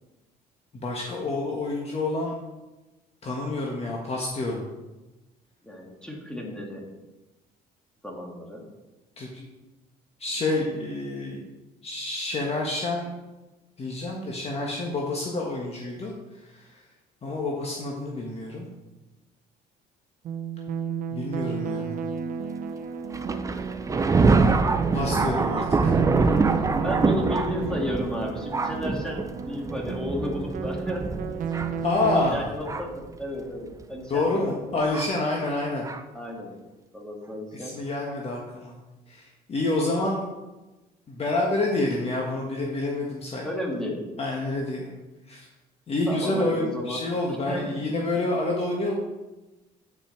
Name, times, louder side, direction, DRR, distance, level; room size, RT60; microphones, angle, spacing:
voice 1, 0.7-2.3 3.2-4.6 9.2-9.5 10.2-11.5 11.8-13.1 13.8-16.8 17.2-18.7 21.1-22.0 24.9-25.9 31.8-32.5 34.1-35.9 37.5-38.8 39.1-40.3 41.1-43.5 44.2-44.9 45.3-45.5 45.9-48.9, left 2 dB, 35° left, -1 dB, 1.4 m, -28 dB
voice 2, 5.6-6.9 8.0-8.6 25.5-25.7 26.8-31.3 32.3-34.7 36.1-36.5 36.9-37.8 43.4-44.1 46.1-47.0 47.5-47.7, left 1 dB, 5° left, -1 dB, 2.0 m, -33 dB
sound 1, 20.2-32.3, right 7 dB, 55° right, 0.7 m, -32 dB
Thunder, 23.1-33.0 33.8-33.9 34.9-35.1 35.8-36.0, right 4 dB, 20° right, 0.6 m, -25 dB
9.5 x 6.0 x 4.5 m, 1.1 s
cardioid pair, 110°, 17 cm